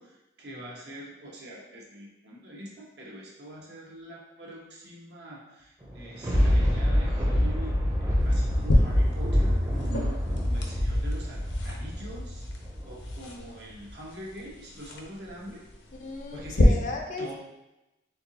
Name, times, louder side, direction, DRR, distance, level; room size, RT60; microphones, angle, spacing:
voice 1, 0.0-7.7 8.2-12.5 12.8-15.6 16.3-16.8 17.2-17.3, right 1 dB, 70° right, -4 dB, 1.1 m, -44 dB
Thunder, 5.8-13.4 13.9-14.0, equal, 15° right, 0.6 m, -26 dB
sound 1, 8.2-16.6, left 1 dB, 80° left, 0.7 m, -32 dB
voice 2, 16.0-17.3, left 3 dB, 45° left, 2 dB, 0.4 m, -35 dB
4.5 x 3.7 x 2.8 m, 0.95 s
head